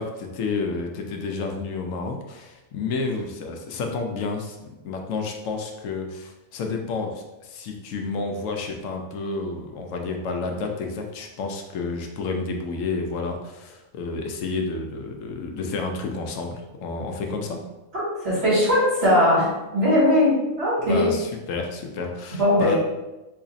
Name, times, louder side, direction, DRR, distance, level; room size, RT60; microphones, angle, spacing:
voice 1, 0.0-17.6 20.9-22.8, left 3 dB, 85° left, 3 dB, 1.0 m, -30 dB
voice 2, 17.9-21.1 22.4-22.8, left 1 dB, 55° right, -7 dB, 1.7 m, -20 dB
3.1 x 2.5 x 3.9 m, 1.0 s
omnidirectional pair, 1.3 m